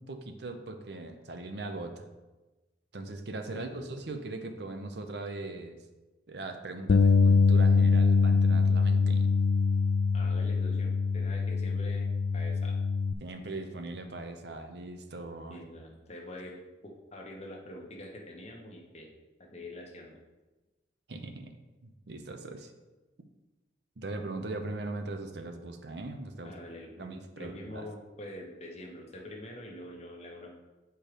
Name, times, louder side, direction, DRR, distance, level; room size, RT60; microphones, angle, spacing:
voice 1, 0.0-2.1 2.9-5.8 6.3-9.3 13.2-15.6 21.1-21.5 21.8-22.7 24.0-26.5 27.0-27.9, right 2 dB, 60° right, 6 dB, 0.7 m, -40 dB
voice 2, 3.4-3.9 10.1-12.8 15.5-19.1 19.4-20.2 26.4-30.5, left 1 dB, 35° left, -1 dB, 1.2 m, -45 dB
Bass guitar, 6.9-13.1, left 4 dB, 60° left, 0.3 m, -24 dB
7.5 x 4.6 x 5.0 m, 1.1 s
head